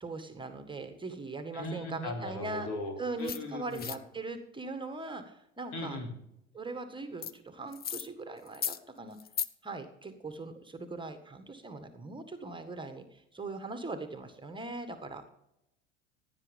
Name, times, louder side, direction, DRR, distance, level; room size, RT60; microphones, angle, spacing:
voice 1, 0.0-2.7 3.0-6.0 6.5-9.2 9.6-15.2, right 3 dB, 15° right, 8 dB, 1.7 m, -40 dB
voice 2, 1.5-3.9 5.7-6.1, left 2 dB, 60° left, 3 dB, 3.3 m, -38 dB
sound 1, 3.2-3.4 3.7-4.0 7.2-7.3 7.7-8.1 8.5-8.8 9.2-9.5, left 8 dB, 25° left, 0.7 m, -35 dB
16.5 x 9.5 x 5.3 m, 0.82 s
figure-of-eight pair, 70°, 37 cm